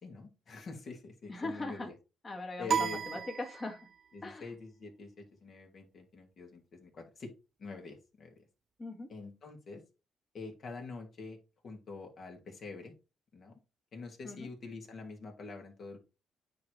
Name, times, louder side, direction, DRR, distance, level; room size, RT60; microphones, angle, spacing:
voice 1, 0.0-1.9 2.6-3.2 4.1-7.3 7.6-8.3 9.1-9.8 10.3-11.4 11.6-12.9 13.3-13.6 13.9-16.0, left 4 dB, 50° left, 2 dB, 2.6 m, -45 dB
voice 2, 1.3-1.9 2.2-3.8 4.2-4.4 8.8-9.1 14.2-14.5, left 2 dB, 30° left, 3 dB, 1.9 m, -40 dB
sound 1, 2.7-4.1, right 7 dB, 50° right, 0.5 m, -34 dB
9.2 x 3.3 x 4.7 m, 0.30 s
cardioid pair, 90°, 0 cm